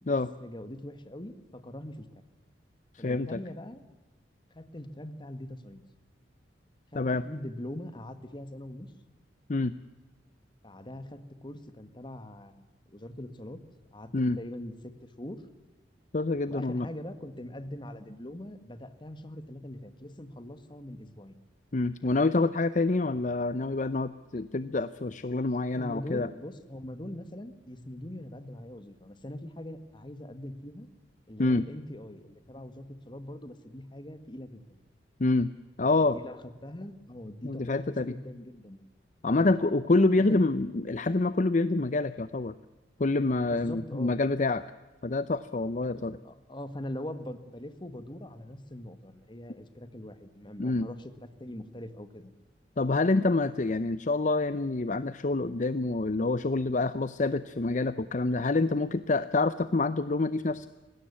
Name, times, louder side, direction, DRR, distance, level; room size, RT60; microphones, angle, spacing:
voice 1, 0.0-2.2 3.0-3.8 4.5-5.8 6.9-8.9 10.6-13.6 13.9-14.1 14.4-14.7 15.0-15.4 16.5-21.4 25.7-30.9 31.3-34.8 35.8-38.8 39.3-39.5 40.2-40.4 43.4-44.2 45.9-51.1 51.4-52.3, left 1 dB, 25° left, 10 dB, 1.8 m, -42 dB
voice 2, 2.9-3.4 6.9-7.2 9.5-9.7 14.1-14.4 16.1-16.9 21.7-26.3 31.4-31.6 35.2-35.5 35.8-36.2 37.4-38.2 39.2-42.5 43.0-44.6 45.0-46.2 50.6-50.9 52.8-60.7, left 2 dB, 45° left, 14 dB, 0.6 m, -27 dB
20.0 x 16.5 x 9.8 m, 1.2 s
head